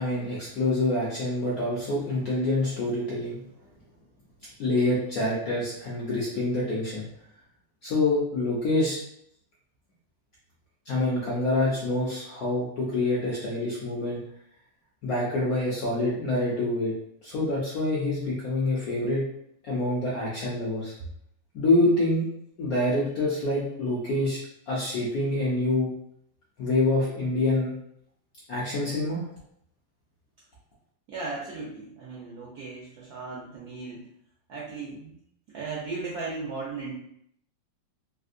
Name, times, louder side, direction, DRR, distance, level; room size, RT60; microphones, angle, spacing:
voice 1, 0.0-3.4 4.6-7.0 7.8-9.0 10.9-14.2 15.0-16.9 17.2-19.2 19.6-20.9 21.5-22.2 22.6-24.4 24.7-25.9 26.6-27.7 28.5-29.2, left 2 dB, 70° left, -6 dB, 0.8 m, -26 dB
voice 2, 31.1-34.0 34.5-35.2 35.5-36.9, right 3 dB, 70° right, -5 dB, 0.9 m, -36 dB
3.4 x 2.5 x 2.5 m, 0.71 s
omnidirectional pair, 2.3 m